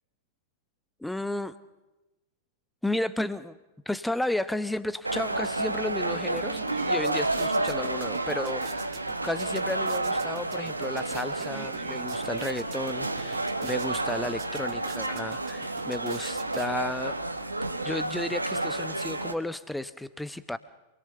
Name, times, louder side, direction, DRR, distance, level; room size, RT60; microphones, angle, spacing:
voice 1, 1.0-1.6 2.8-3.6 3.9-9.0 9.2-17.2 17.8-20.6, left 1 dB, 5° left, 14 dB, 0.9 m, -33 dB
sound 1, 5.0-19.3, right 2 dB, 85° right, 1.5 m, -30 dB
sound 2, 6.3-17.1, right 14 dB, 45° right, 1.4 m, -47 dB
27.5 x 21.0 x 6.8 m, 1.1 s
figure-of-eight pair, 95°, 0 cm